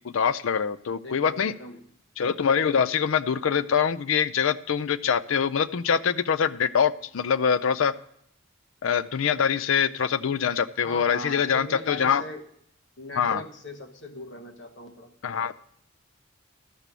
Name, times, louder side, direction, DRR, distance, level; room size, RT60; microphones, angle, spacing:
voice 1, 0.0-1.5 2.2-7.9 8.8-12.2 13.2-13.4 15.2-15.5, left 7 dB, 90° left, 16 dB, 0.5 m, -24 dB
voice 2, 1.0-1.8 10.8-12.4 13.0-15.1, left 1 dB, 65° left, 4 dB, 1.1 m, -39 dB
13.0 x 6.8 x 6.0 m, 0.70 s
head